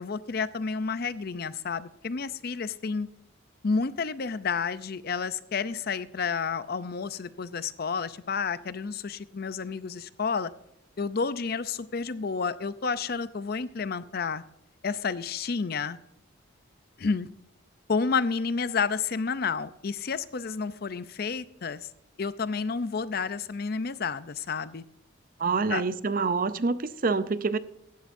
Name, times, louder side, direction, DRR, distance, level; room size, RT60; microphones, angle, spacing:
voice 1, 0.0-3.1 3.6-10.5 11.0-14.4 14.8-16.0 17.0-17.3 17.9-21.9 22.2-24.8 25.7-25.8, left 5 dB, 50° left, 15 dB, 0.5 m, -30 dB
voice 2, 25.4-27.6, right 4 dB, 45° right, 14 dB, 0.5 m, -26 dB
15.5 x 11.5 x 2.6 m, 0.82 s
head